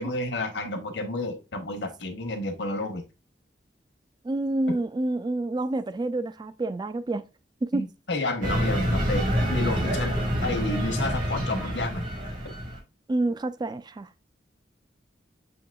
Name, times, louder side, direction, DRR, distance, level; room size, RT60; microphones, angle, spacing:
voice 1, 0.0-3.0 4.7-4.8 7.7-12.1, left 2 dB, 75° left, 1.1 m, -31 dB
voice 2, 4.2-7.2 7.7-7.8 13.1-14.1, right 2 dB, 25° right, 0.4 m, -28 dB
sound 1, 8.4-12.8, equal, 50° right, 1.5 m, -27 dB
7.1 x 2.9 x 2.2 m
head